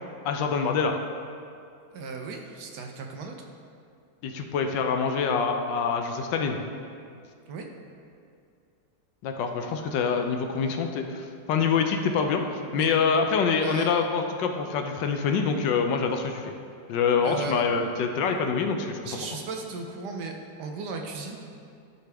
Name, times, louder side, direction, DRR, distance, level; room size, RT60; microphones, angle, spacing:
voice 1, 0.2-1.0 4.2-6.6 9.2-12.4 12.7-16.5 16.9-19.0, left 5 dB, 75° left, 4 dB, 1.2 m, -25 dB
voice 2, 1.9-3.3 7.5-7.7 12.7-12.9 13.6-14.1 17.2-17.6 19.0-21.4, right 4 dB, 70° right, 2 dB, 1.2 m, -36 dB
12.5 x 5.0 x 3.4 m, 2.4 s
omnidirectional pair, 2.1 m